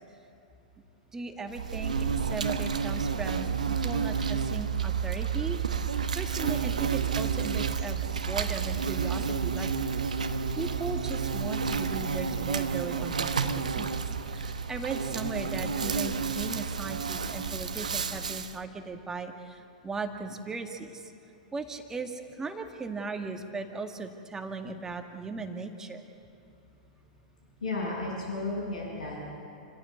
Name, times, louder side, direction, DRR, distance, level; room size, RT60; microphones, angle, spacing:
voice 1, 1.1-5.6 6.2-10.0 10.6-14.0 14.3-21.0 21.5-26.0, right 4 dB, 15° right, 5 dB, 1.9 m, -38 dB
Insect, 1.5-18.6, right 6 dB, 75° right, 1.0 m, -30 dB
voice 2, 27.6-29.3, left 2 dB, 80° left, -9 dB, 7.1 m, -33 dB
28.0 x 15.5 x 8.1 m, 2.8 s
figure-of-eight pair, 100°, 4 cm